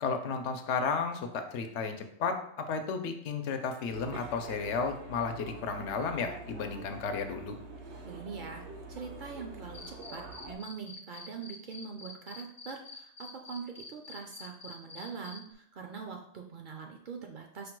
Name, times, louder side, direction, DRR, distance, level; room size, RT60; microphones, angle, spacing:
voice 1, 0.0-7.6, left 5 dB, 80° left, 6 dB, 0.9 m, -33 dB
sound 1, 3.9-10.6, right 2 dB, 85° right, 1.1 m, -46 dB
voice 2, 8.0-8.6 8.9-17.7, right 5 dB, 60° right, 3 dB, 0.6 m, -43 dB
Cricket, 9.7-15.4, left 4 dB, 45° left, 0.4 m, -46 dB
5.0 x 2.2 x 4.4 m, 0.69 s
omnidirectional pair, 1.2 m